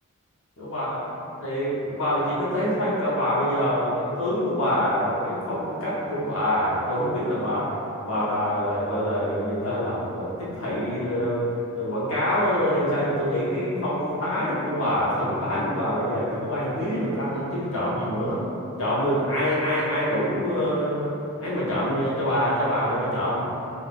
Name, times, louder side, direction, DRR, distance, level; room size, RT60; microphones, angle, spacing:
voice 1, 0.6-1.0 1.4-7.7 8.0-11.4 11.7-18.4 18.8-21.1 21.4-23.5, equal, 65° left, -9 dB, 0.9 m, -25 dB
3.5 x 2.5 x 2.4 m, 2.7 s
head